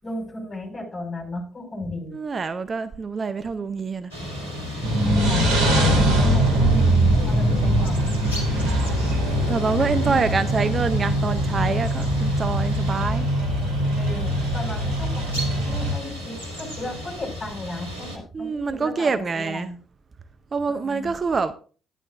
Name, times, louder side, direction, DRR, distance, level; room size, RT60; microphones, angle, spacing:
voice 1, 0.0-2.1 5.2-8.5 13.9-19.8 20.7-21.1, left 1 dB, 30° left, 6.0 m, -35 dB
voice 2, 2.1-4.1 8.6-9.0 9.5-13.3 18.3-19.7 20.5-21.5, right 4 dB, 35° right, 0.6 m, -26 dB
sound 1, 4.1-18.2, left 2 dB, 90° left, 2.6 m, -34 dB
sound 2, 4.8-15.9, right 1 dB, 65° right, 2.7 m, -22 dB
11.5 x 11.0 x 2.5 m
figure-of-eight pair, 50°, 0 cm